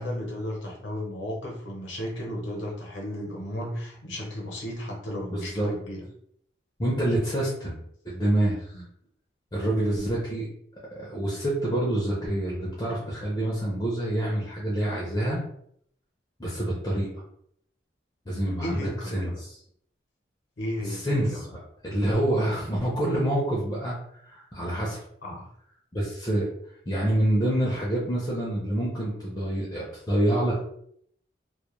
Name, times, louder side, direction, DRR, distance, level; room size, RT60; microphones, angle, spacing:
voice 1, 0.0-6.1 8.7-8.8 18.6-19.4 20.6-21.5 25.2-25.5, left 1 dB, 80° left, -1 dB, 0.7 m, -34 dB
voice 2, 5.3-5.7 6.8-7.8 8.0-8.8 9.5-10.5 11.0-15.4 16.4-17.1 18.3-19.5 20.8-23.9 24.2-25.0 25.9-26.5 26.9-30.6, right 1 dB, 20° left, -5 dB, 0.5 m, -27 dB
2.2 x 2.2 x 2.9 m, 0.68 s
head